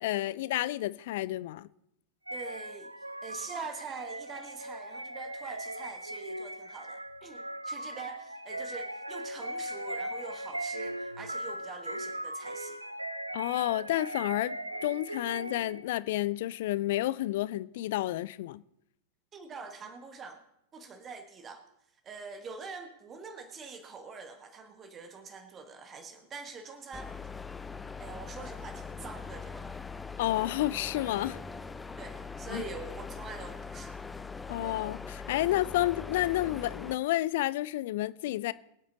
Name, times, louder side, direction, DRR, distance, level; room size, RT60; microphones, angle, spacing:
voice 1, 0.0-1.7 13.3-14.6 14.8-18.6 30.2-31.4 32.5-32.6 34.5-38.5, left 15 dB, 55° left, 0.5 m, -30 dB
voice 2, 2.3-2.9 3.2-12.8 19.3-20.4 20.7-21.6 22.0-27.5 28.0-29.7 31.3-31.6 32.0-34.0, right 4 dB, 25° right, 1.5 m, -44 dB
sound 1, 2.3-15.9, right 1 dB, 85° right, 0.6 m, -39 dB
sound 2, 26.9-37.0, left 5 dB, 10° left, 0.7 m, -41 dB
23.5 x 8.6 x 4.0 m
figure-of-eight pair, 90°, 0 cm